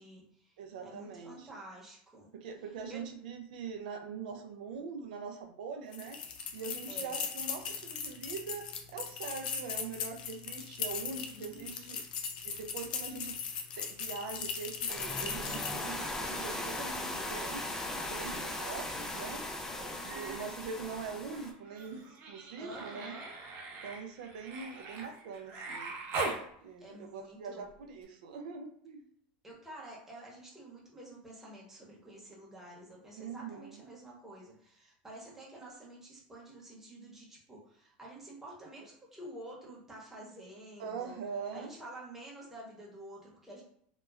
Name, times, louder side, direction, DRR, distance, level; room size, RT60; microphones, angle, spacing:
voice 1, 0.0-2.3 2.9-3.0 6.9-7.2 11.3-12.0 19.6-20.1 22.6-23.3 26.8-27.6 29.4-41.2 41.5-43.6, right 1 dB, 5° right, -4 dB, 0.9 m, -49 dB
voice 2, 0.6-1.5 2.3-6.2 6.5-12.0 12.4-13.3 13.8-17.6 18.0-19.4 20.0-23.2 23.8-26.0 26.6-29.0 33.2-33.8 40.8-41.8, right 5 dB, 85° right, 4 dB, 0.4 m, -43 dB
sound 1, 5.9-16.0, left 6 dB, 85° left, 0.4 m, -39 dB
sound 2, 14.9-21.5, left 1 dB, 10° left, 0.3 m, -38 dB
Human voice, 19.7-20.5 20.8-26.4 28.0-28.1, right 3 dB, 45° right, 0.6 m, -41 dB
2.8 x 2.1 x 2.3 m, 0.66 s
supercardioid pair, 125°, 5 cm